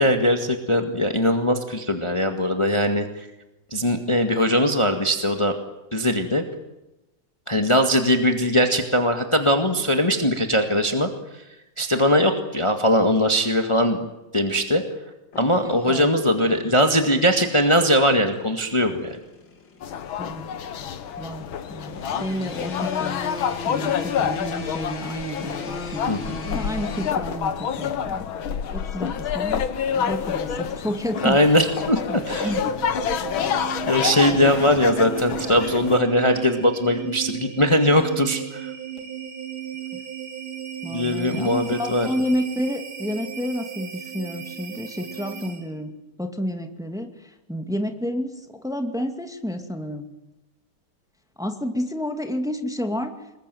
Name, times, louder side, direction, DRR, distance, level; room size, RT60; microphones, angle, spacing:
voice 1, 0.0-3.3 3.7-5.5 5.9-6.4 7.5-11.4 11.8-14.0 14.3-14.8 15.4-19.2 26.1-26.4 31.2-32.6 33.9-38.7 40.9-42.1, equal, 15° left, 5 dB, 1.9 m, -20 dB
sound 1, 15.3-27.1, left 4 dB, 60° left, 3.2 m, -38 dB
voice 2, 15.6-16.2 16.4-16.6 20.2-20.5 21.2-23.2 23.6-28.3 28.7-29.7 30.0-31.4 32.4-32.7 39.9-40.0 40.8-45.9 46.2-47.1 47.5-50.1 51.4-53.1, equal, ahead, 5 dB, 2.2 m, -30 dB
sound 2, 19.8-36.0, left 8 dB, 75° left, 2.0 m, -28 dB
sound 3, 31.9-45.8, right 10 dB, 80° right, 3.9 m, -35 dB
27.0 x 22.0 x 9.4 m, 0.96 s
omnidirectional pair, 2.2 m